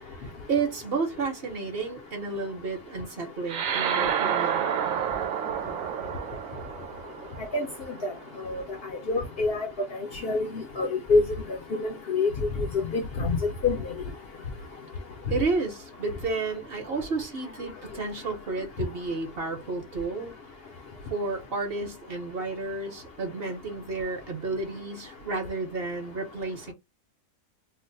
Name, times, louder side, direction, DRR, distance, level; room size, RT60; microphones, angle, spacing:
voice 1, 0.2-4.7 15.3-20.3 21.1-26.7, right 3 dB, 50° right, 1.0 m, -31 dB
sound 1, 3.5-8.2, right 8 dB, 85° right, 1.0 m, -29 dB
voice 2, 9.1-9.7 10.2-11.2 11.8-12.3 12.6-13.9, left 3 dB, 60° left, 0.7 m, -26 dB
2.5 x 2.0 x 3.8 m
omnidirectional pair, 1.4 m